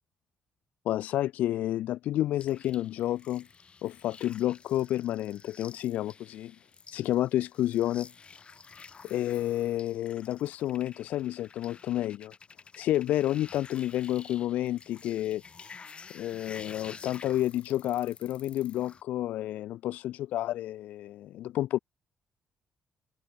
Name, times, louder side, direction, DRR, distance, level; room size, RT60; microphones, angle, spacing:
voice 1, 0.9-3.5 3.8-6.5 6.9-8.1 9.0-12.3 12.7-15.7 16.1-21.8, left 13 dB, 65° left, 0.4 m, -30 dB
sound 1, 2.4-19.0, left 5 dB, 40° left, 4.6 m, -51 dB
open air
figure-of-eight pair, 45°, 3 cm